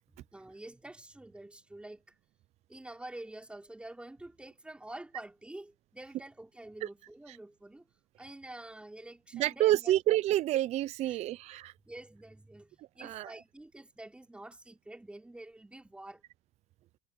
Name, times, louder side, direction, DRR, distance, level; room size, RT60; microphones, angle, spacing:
voice 1, 0.3-2.0 2.7-7.8 8.2-9.9 11.1-11.2 11.8-16.2, right 1 dB, 5° right, 4.5 m, -47 dB
voice 2, 9.3-11.7 13.0-13.3, right 14 dB, 50° right, 0.5 m, -28 dB
supercardioid pair, 105°, 14 cm